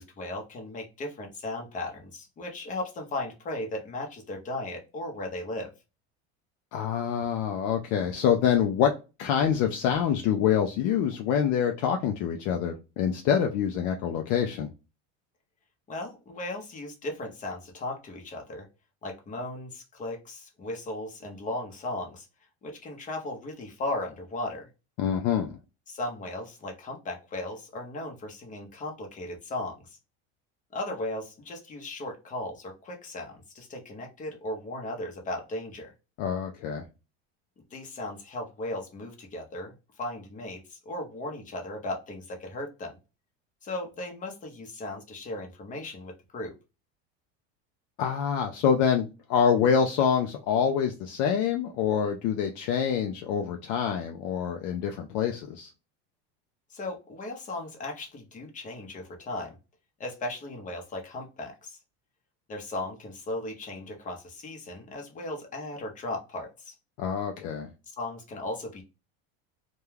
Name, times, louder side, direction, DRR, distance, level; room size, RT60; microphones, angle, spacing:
voice 1, 0.0-5.7 15.9-18.6 19.0-22.3 22.6-24.7 25.9-30.0 30.7-35.9 37.7-42.9 43.6-46.5 56.7-59.6 60.0-61.8 62.5-66.7 68.0-68.8, left 2 dB, 25° left, 0.7 m, -36 dB
voice 2, 6.7-8.9 9.2-14.7 25.0-25.6 36.2-36.8 48.0-55.7 67.0-67.7, left 8 dB, 55° left, 0.4 m, -26 dB
2.2 x 2.2 x 3.1 m
supercardioid pair, 130°, 32 cm